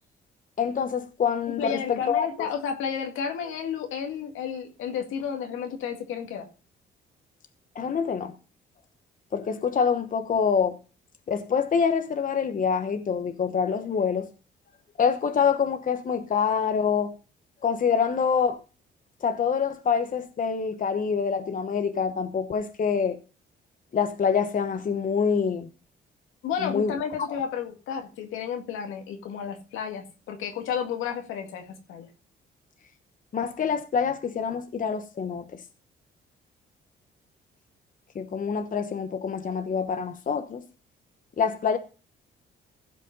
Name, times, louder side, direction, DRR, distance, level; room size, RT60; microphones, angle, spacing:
voice 1, 0.6-2.5 7.7-8.3 9.3-10.8 11.3-14.3 15.0-17.1 17.6-18.6 19.2-23.2 23.9-25.7 26.6-26.9 33.3-35.6 38.1-40.6 41.4-41.8, left 6 dB, 45° left, 1.0 m, -26 dB
voice 2, 1.5-6.5 26.4-32.1, left 7 dB, 90° left, 2.1 m, -32 dB
15.5 x 5.2 x 5.4 m
cardioid pair, 90°, 20 cm